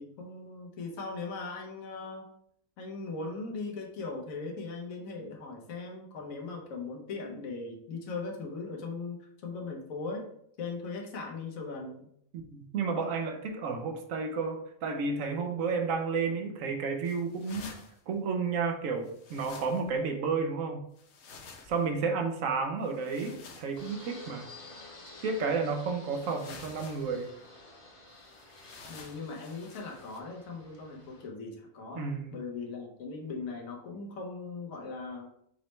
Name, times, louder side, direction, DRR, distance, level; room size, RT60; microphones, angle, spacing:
voice 1, 0.0-2.3 2.8-10.3 10.6-12.1 28.9-32.0 32.3-35.3, left 4 dB, 75° left, 0 dB, 1.3 m, -39 dB
voice 2, 12.5-17.7 18.1-20.9 21.7-24.5 25.2-27.3 32.0-32.4, right 4 dB, 75° right, 5 dB, 1.0 m, -31 dB
sound 1, 17.0-18.0 19.0-20.0 21.0-21.9 22.8-23.9 25.1-25.2 26.1-27.2 28.2-30.2, left 4 dB, 60° left, 0.9 m, -50 dB
Fixed-wing aircraft airplane, 23.8-31.3, left 2 dB, 30° left, 0.8 m, -51 dB
5.3 x 3.1 x 3.1 m, 0.70 s
omnidirectional pair, 1.4 m